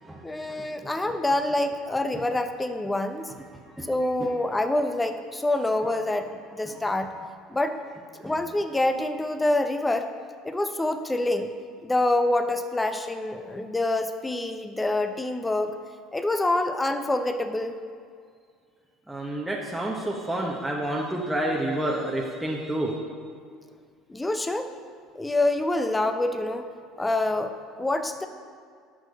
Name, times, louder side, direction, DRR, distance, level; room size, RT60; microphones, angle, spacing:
voice 1, 0.2-3.3 3.9-7.1 7.5-7.8 8.2-10.1 10.4-11.5 11.8-15.8 16.1-17.8 24.1-24.7 25.1-26.7 27.0-28.3, left 2 dB, 15° left, 8 dB, 0.8 m, -26 dB
voice 2, 19.1-23.0, right 1 dB, 5° right, -3 dB, 1.2 m, -29 dB
10.5 x 6.4 x 5.3 m, 2.1 s
hypercardioid pair, 65°, 0 cm